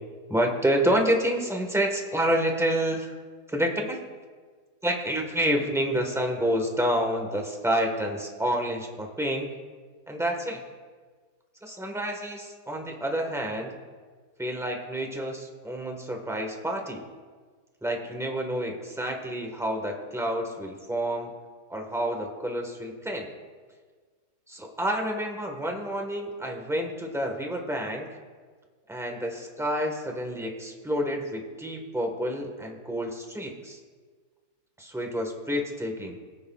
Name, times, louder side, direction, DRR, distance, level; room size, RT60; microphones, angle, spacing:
voice 1, 0.3-3.1 3.5-4.0 4.8-9.5 10.1-10.6 11.6-13.8 14.4-17.0 17.8-21.3 21.7-23.3 24.5-28.1 28.9-33.8 34.8-36.2, equal, ahead, 2 dB, 1.1 m, -28 dB
21.5 x 9.7 x 2.4 m, 1.5 s
omnidirectional pair, 1.7 m